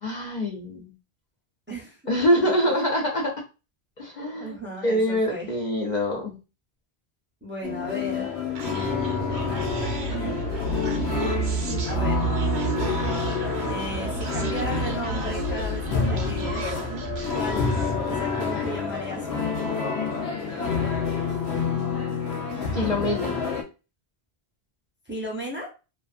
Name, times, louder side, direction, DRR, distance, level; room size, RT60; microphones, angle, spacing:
voice 1, 0.0-0.9 2.1-3.3 4.0-4.6 4.8-6.4 22.7-23.3, equal, 50° left, -2 dB, 0.6 m, -24 dB
voice 2, 1.7-2.0 2.4-2.7 4.4-5.5 7.4-8.3 8.6-9.6 10.1-10.5 11.6-12.3 13.7-15.8 16.1-16.8 17.3-17.7 18.0-19.6 25.1-25.7, equal, 15° right, -3 dB, 0.5 m, -36 dB
sound 1, 7.6-23.6, left 5 dB, 85° left, 0.9 m, -28 dB
Human voice, 8.6-18.0, right 5 dB, 60° right, 0.8 m, -31 dB
2.4 x 2.4 x 2.3 m, 0.30 s
omnidirectional pair, 1.1 m